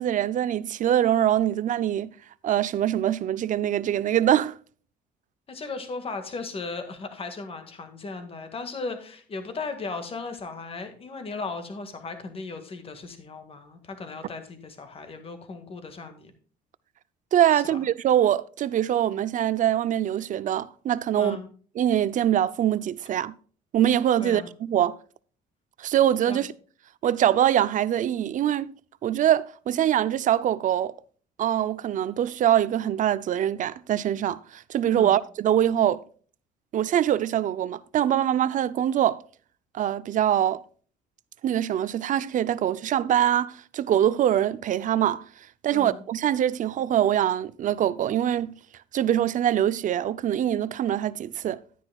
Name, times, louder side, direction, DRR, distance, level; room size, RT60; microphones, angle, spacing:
voice 1, 0.0-2.1 2.4-4.5 17.3-21.4 21.8-23.3 23.7-25.0 25.8-26.5 27.0-28.8 29.0-30.9 31.4-36.0 36.7-39.2 39.7-40.6 41.4-45.2 45.6-48.5 48.9-51.6, right 11 dB, 50° right, 0.5 m, -23 dB
voice 2, 5.5-16.3 17.5-17.8 21.2-21.5 24.2-24.5 26.3-26.5 35.0-35.2 45.7-46.0, left 3 dB, 35° left, 1.8 m, -36 dB
11.0 x 9.8 x 2.3 m
cardioid pair, 110°, 17 cm